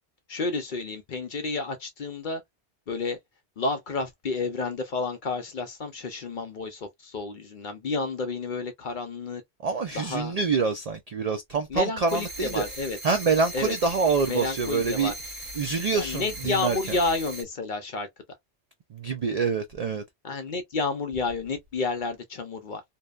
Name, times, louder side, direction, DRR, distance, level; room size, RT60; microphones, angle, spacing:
voice 1, 0.3-2.4 2.9-3.2 3.6-9.4 9.9-10.3 11.7-13.0 13.5-13.7 14.3-15.1 15.9-18.1 20.2-22.8, left 3 dB, 55° left, 0.7 m, -30 dB
voice 2, 9.6-12.6 13.0-15.1 15.6-17.0 18.9-20.0, right 5 dB, 65° right, 0.3 m, -26 dB
sound 1, 12.1-17.4, right 1 dB, 35° right, 1.0 m, -39 dB
2.7 x 2.1 x 2.3 m
omnidirectional pair, 1.2 m